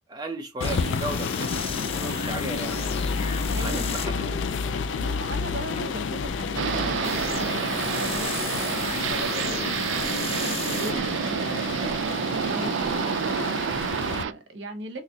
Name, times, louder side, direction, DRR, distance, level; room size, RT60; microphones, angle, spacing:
voice 1, 0.1-2.9 3.6-4.6, right 2 dB, 20° right, 0.7 m, -36 dB
sound 1, 0.6-14.2, left 5 dB, 90° left, 0.4 m, -30 dB
sound 2, 0.6-14.3, left 3 dB, 35° left, 0.7 m, -37 dB
voice 2, 3.5-3.8 4.9-15.0, right 2 dB, 70° right, 1.0 m, -39 dB
sound 3, 6.5-14.3, right 8 dB, 85° right, 0.4 m, -28 dB
4.1 x 3.0 x 2.8 m
head